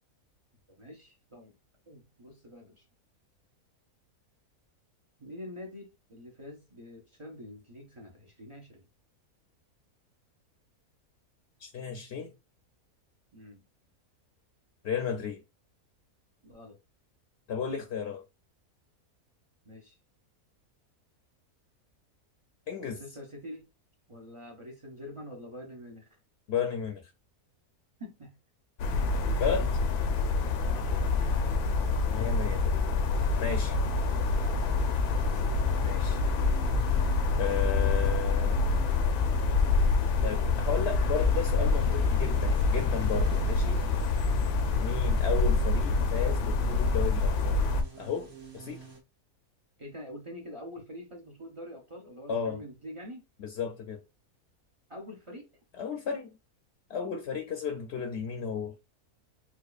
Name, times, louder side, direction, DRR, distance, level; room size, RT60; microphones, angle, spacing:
voice 1, 0.7-1.5 1.9-2.8 5.2-8.8 13.3-13.6 16.4-16.8 19.6-20.0 22.8-23.7 24.1-26.2 28.0-28.3 30.7-31.0 34.1-34.7 49.8-53.2 54.9-55.5, left 1 dB, 40° right, 0.5 m, -45 dB
voice 2, 11.6-12.3 14.8-15.4 17.5-18.2 22.7-23.0 26.5-27.1 29.4-29.7 32.1-32.6 33.4-33.8 35.8-36.2 37.3-38.6 40.2-43.9 44.8-47.6 48.0-48.8 52.3-52.6 53.4-54.0 55.8-56.3 56.9-58.7, left 7 dB, 60° left, 0.7 m, -33 dB
sound 1, 28.8-47.8, left 3 dB, 85° left, 1.1 m, -26 dB
sound 2, 33.1-49.0, right 4 dB, 70° right, 1.6 m, -46 dB
4.4 x 2.4 x 2.4 m
omnidirectional pair, 1.6 m